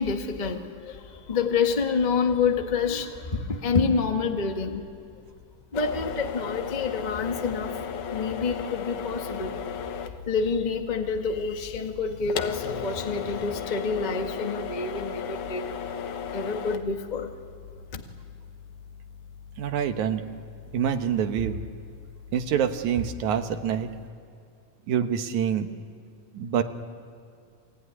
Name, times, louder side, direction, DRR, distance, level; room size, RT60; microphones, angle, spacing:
voice 1, 0.0-4.8 5.7-7.8 8.1-9.5 10.3-15.7 16.3-17.3 17.9-18.0, left 5 dB, 30° left, 4 dB, 0.7 m, -27 dB
sound 1, 5.7-24.1, left 7 dB, 75° left, 2.6 m, -37 dB
voice 2, 19.6-20.2 20.7-21.6 22.3-23.9 24.9-25.7 26.3-26.6, right 8 dB, 70° right, 7 dB, 2.5 m, -26 dB
28.5 x 20.0 x 9.9 m, 2.4 s
omnidirectional pair, 3.6 m